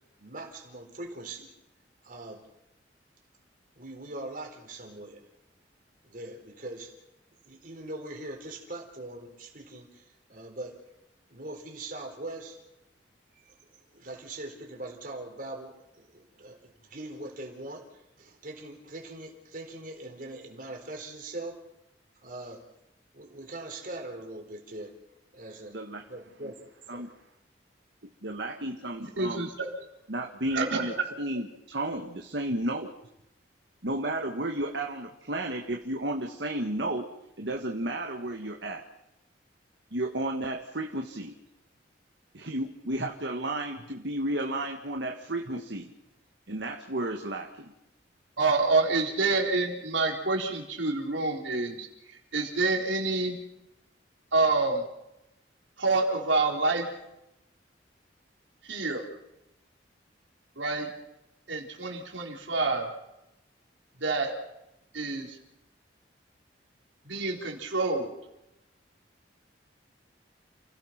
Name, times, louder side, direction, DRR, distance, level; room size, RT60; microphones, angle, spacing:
voice 1, 0.2-1.5 2.0-2.4 3.7-5.2 6.0-6.9 7.4-10.8 11.3-12.6 13.3-21.6 22.2-22.6 23.1-24.9 25.3-25.8 26.1-26.6 26.9-27.1, right 2 dB, 45° right, 2 dB, 4.2 m, -41 dB
voice 2, 28.2-29.5 30.1-32.9 33.8-37.1 37.4-38.9 39.9-41.3 42.3-45.9 46.5-47.7, right 1 dB, 65° right, 2 dB, 1.7 m, -33 dB
voice 3, 29.0-29.7 30.5-31.1 43.0-43.1 48.4-53.4 54.3-54.8 55.8-56.9 58.6-59.1 60.6-60.9 61.5-62.9 64.0-64.3 64.9-65.4 67.1-68.1, right 3 dB, 85° right, 0 dB, 4.2 m, -27 dB
30.0 x 16.5 x 6.0 m, 0.89 s
head